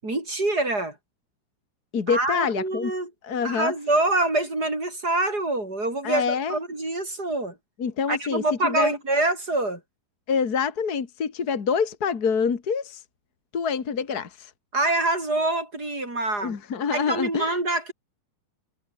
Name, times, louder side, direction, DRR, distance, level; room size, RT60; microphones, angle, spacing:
voice 1, 0.0-1.0 2.1-3.1 3.4-6.2 6.5-7.6 8.1-9.8 14.7-16.6 16.9-17.9, right 2 dB, 20° right, 7.4 m, -25 dB
voice 2, 1.9-2.9 3.2-3.7 6.0-6.6 7.8-8.9 10.3-13.0 13.5-14.5 16.4-17.5, left 6 dB, 40° left, 1.4 m, -26 dB
omnidirectional pair, 4.5 m